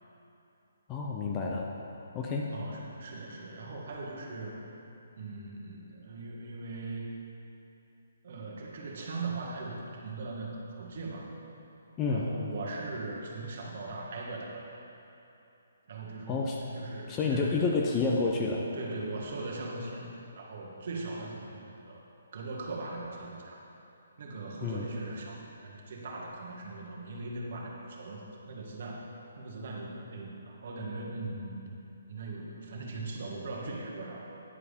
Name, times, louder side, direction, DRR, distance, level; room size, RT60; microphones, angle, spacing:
voice 1, 0.9-1.7 2.1-2.5 12.0-12.3 16.3-16.6 17.1-18.7 24.6-24.8, left 4 dB, 20° left, -1 dB, 0.5 m, -29 dB
voice 2, 2.5-4.6 5.1-7.1 8.2-11.2 12.1-14.7 15.9-17.6 18.7-20.1 20.4-22.0 22.3-23.6 24.2-29.0 29.4-31.6 32.1-34.3, right 3 dB, 55° right, -2 dB, 1.5 m, -40 dB
9.8 x 4.8 x 5.2 m, 2.9 s
hypercardioid pair, 155°, 0 cm